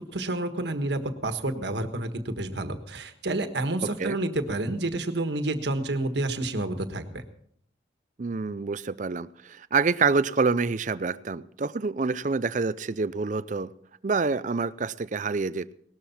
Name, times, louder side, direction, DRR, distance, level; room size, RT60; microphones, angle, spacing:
voice 1, 0.1-7.2, right 2 dB, 70° right, 8 dB, 1.5 m, -29 dB
voice 2, 3.8-4.2 8.2-13.7 14.0-15.7, right 4 dB, 40° right, 17 dB, 0.5 m, -27 dB
18.5 x 12.5 x 4.3 m, 0.64 s
head